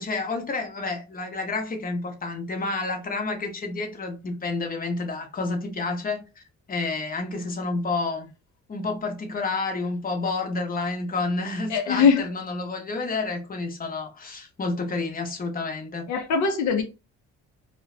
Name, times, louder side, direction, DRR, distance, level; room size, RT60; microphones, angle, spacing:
voice 1, 0.0-6.4 6.7-8.3 8.7-16.1, left 3 dB, 30° left, 0.8 m, -29 dB
voice 2, 11.7-12.2 16.1-16.8, left 6 dB, 70° left, 0.5 m, -21 dB
2.2 x 2.1 x 3.7 m
cardioid pair, 90°, 30 cm